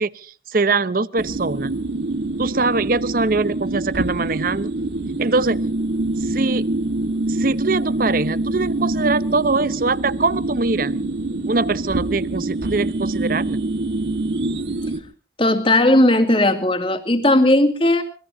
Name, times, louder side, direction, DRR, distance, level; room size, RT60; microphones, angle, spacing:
voice 1, 0.0-1.8 2.4-4.7 5.2-5.6 6.2-6.7 7.3-10.9 11.5-13.6, right 3 dB, 50° right, 17 dB, 0.8 m, -22 dB
sound 1, 1.2-15.0, right 2 dB, 70° right, 1.8 m, -25 dB
voice 2, 15.4-18.0, left 1 dB, 30° left, 5 dB, 2.3 m, -16 dB
26.0 x 20.5 x 2.7 m, 0.39 s
head